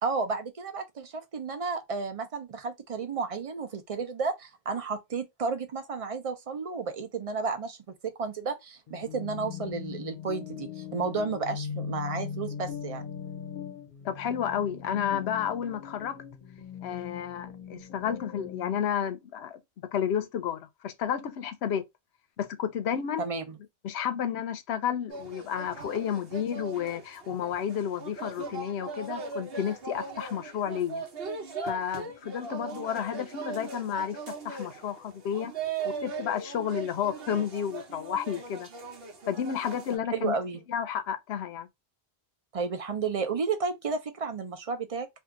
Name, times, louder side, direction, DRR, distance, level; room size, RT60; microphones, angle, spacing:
voice 1, 0.0-13.1 23.2-23.4 40.1-40.6 42.5-45.1, right 4 dB, 40° right, 0.6 m, -32 dB
sound 1, 8.9-18.8, left 7 dB, 55° left, 0.7 m, -40 dB
voice 2, 14.0-16.2 16.8-19.6 19.9-21.8 22.4-23.2 23.8-31.0 31.6-35.5 36.0-38.7 39.3-40.4 40.7-41.7, left 8 dB, 90° left, 0.9 m, -31 dB
sound 2, 25.1-40.0, right 4 dB, 70° right, 1.0 m, -39 dB
2.7 x 2.4 x 3.6 m
omnidirectional pair, 1.1 m